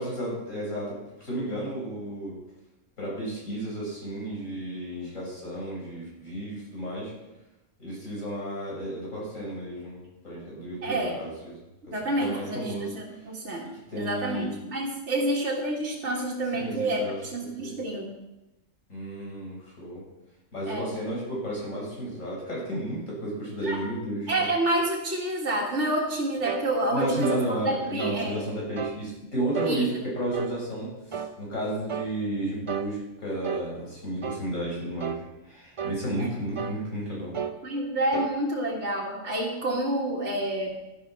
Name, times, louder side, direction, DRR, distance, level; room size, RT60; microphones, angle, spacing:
voice 1, 0.0-2.4 3.0-7.1 7.8-11.6 11.9-12.9 13.6-14.5 16.5-17.2 17.6-17.8 18.9-20.0 20.5-24.5 26.9-37.4, right 1 dB, 85° left, -5 dB, 6.0 m, -33 dB
voice 2, 10.8-11.2 11.9-18.1 20.7-20.9 23.6-23.8 24.3-28.4 29.6-29.8 36.2-36.3 37.6-40.8, right 1 dB, 65° right, -3 dB, 2.2 m, -29 dB
sound 1, 26.4-26.7 27.2-27.5 28.0-28.2 28.8-29.0 29.5-29.8 30.3-30.6 31.1-31.4 31.9-32.1 32.7-32.9 33.4-33.7 34.2-34.5 35.0-35.2 35.8-36.0 36.6-36.8 37.3-37.6 38.1-38.4, right 7 dB, 40° right, 0.5 m, -32 dB
12.0 x 11.0 x 4.5 m, 0.98 s
omnidirectional pair, 1.3 m